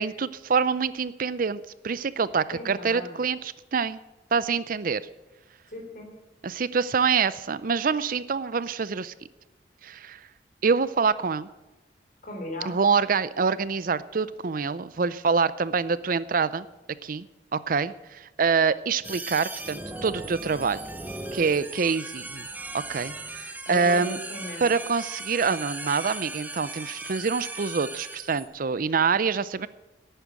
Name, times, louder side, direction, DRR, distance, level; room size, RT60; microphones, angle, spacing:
voice 1, 0.0-4.0 4.3-5.0 6.4-9.1 9.8-10.2 10.6-11.5 12.6-16.7 17.0-17.3 17.5-20.8 21.3-22.5 22.7-24.2 24.6-29.7, right 5 dB, 50° right, 17 dB, 0.5 m, -26 dB
voice 2, 2.5-3.1 5.7-6.1 12.2-12.7 23.7-24.6, left 1 dB, 50° left, 2 dB, 3.6 m, -37 dB
sound 1, 19.0-28.5, right 2 dB, 10° right, 0.8 m, -38 dB
11.0 x 9.0 x 8.2 m, 1.1 s
head